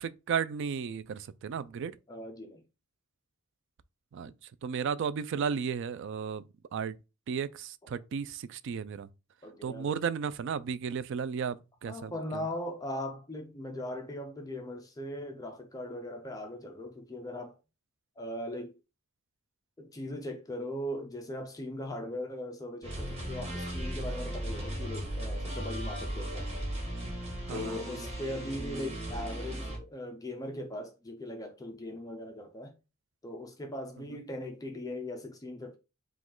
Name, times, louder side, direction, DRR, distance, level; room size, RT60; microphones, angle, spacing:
voice 1, 0.0-2.0 4.1-4.3 4.6-6.4 6.7-7.0 7.3-9.1 9.6-12.4 27.5-27.8, right 6 dB, 60° right, 0.3 m, -34 dB
voice 2, 2.1-2.6 9.4-9.9 11.9-17.6 18.2-18.8 19.8-26.5 27.5-32.8 33.2-35.8, left 1 dB, 15° left, 0.5 m, -39 dB
sound 1, 22.8-29.8, right 1 dB, 30° right, 1.5 m, -36 dB
4.9 x 2.3 x 3.7 m
head